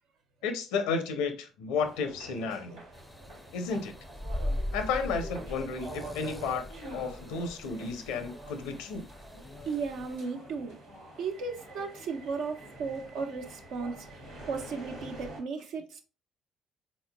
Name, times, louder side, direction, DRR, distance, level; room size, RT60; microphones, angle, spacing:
voice 1, 0.4-2.8 3.5-3.9 4.7-6.6 6.9-9.0, left 5 dB, 80° left, 0.6 m, -32 dB
sound 1, 1.8-15.4, right 1 dB, 85° right, 1.5 m, -47 dB
sound 2, 2.9-10.2, left 1 dB, 10° left, 0.5 m, -40 dB
voice 2, 9.7-10.8 11.2-16.0, right 5 dB, 70° right, 0.7 m, -35 dB
4.1 x 3.8 x 2.2 m
hypercardioid pair, 55°, 0 cm